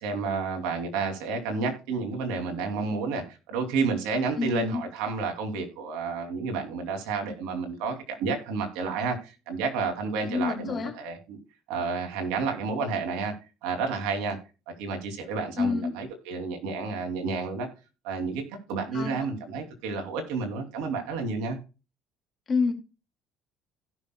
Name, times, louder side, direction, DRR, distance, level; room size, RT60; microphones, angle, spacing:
voice 1, 0.0-11.4 11.7-13.3 13.6-14.4 14.7-17.7 18.0-18.4 18.7-21.6, right 4 dB, 80° right, 2.8 m, -30 dB
voice 2, 4.4-4.8 10.3-10.9 15.6-15.9 18.9-19.1 22.5-22.7, left 4 dB, 35° left, 2.6 m, -27 dB
16.5 x 6.3 x 2.3 m
supercardioid pair, 90°, 0 cm